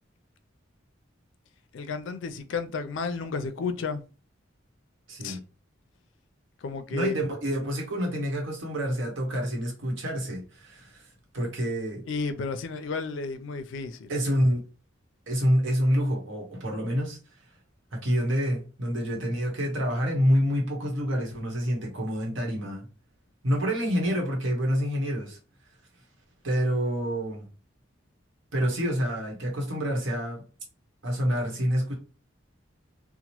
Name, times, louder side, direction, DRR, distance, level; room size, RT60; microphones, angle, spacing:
voice 1, 1.7-4.0 5.2-5.4 6.6-7.2 12.1-14.1, left 4 dB, 75° left, 0.4 m, -32 dB
voice 2, 5.1-5.4 6.9-11.1 11.3-12.0 14.1-14.6 15.3-17.2 17.9-22.9 23.4-25.4 26.4-27.5 28.5-30.4 31.0-31.9, equal, 80° right, 1.0 m, -27 dB
2.8 x 2.0 x 2.9 m
head